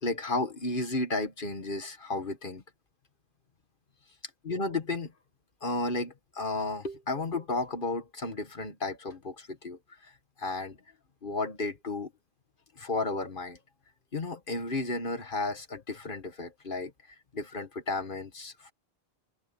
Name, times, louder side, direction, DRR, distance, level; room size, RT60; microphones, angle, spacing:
voice 1, 0.0-2.6 4.4-5.1 5.6-10.1 10.4-10.8 11.2-12.1 12.8-13.6 14.1-16.9 17.3-18.7, left 2 dB, 55° left, 1.8 m, -33 dB
omnidirectional pair, 1.1 m